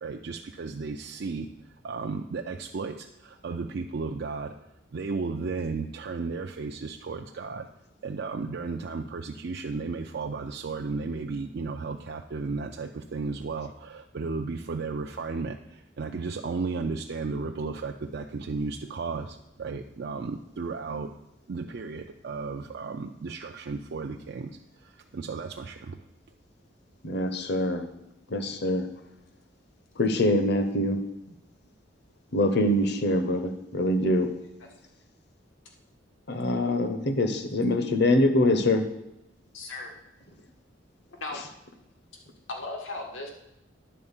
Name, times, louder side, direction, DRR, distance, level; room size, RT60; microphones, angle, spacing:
voice 1, 0.0-1.5 1.8-4.5 4.9-7.7 8.0-21.1 21.5-26.0, right 4 dB, 55° right, 3 dB, 0.4 m, -34 dB
voice 2, 27.0-27.9 28.3-28.9 30.0-31.0 32.3-34.3 36.3-38.8, left 1 dB, 60° left, 8 dB, 0.9 m, -24 dB
voice 3, 39.5-39.9 41.1-41.4 42.5-43.3, left 2 dB, 90° left, 1 dB, 1.5 m, -36 dB
9.9 x 4.4 x 7.2 m, 0.88 s
head